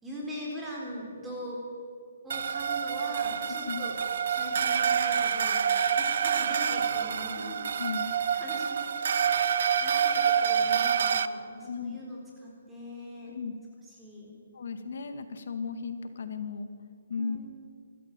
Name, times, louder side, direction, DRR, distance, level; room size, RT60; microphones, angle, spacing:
voice 1, 0.0-1.6 2.2-4.0 4.3-5.6 6.0-7.6 8.0-8.9 9.3-13.3 14.0-14.3 17.2-17.4, equal, 5° right, -4 dB, 3.9 m, -41 dB
sound 1, 2.3-11.3, right 7 dB, 55° right, 0.8 m, -27 dB
voice 2, 3.4-3.9 7.3-8.1 11.6-12.0 13.3-13.5 14.5-16.7 17.1-17.4, left 5 dB, 60° left, 8 dB, 2.1 m, -36 dB
26.0 x 14.0 x 9.1 m, 2.2 s
hypercardioid pair, 165°, 0 cm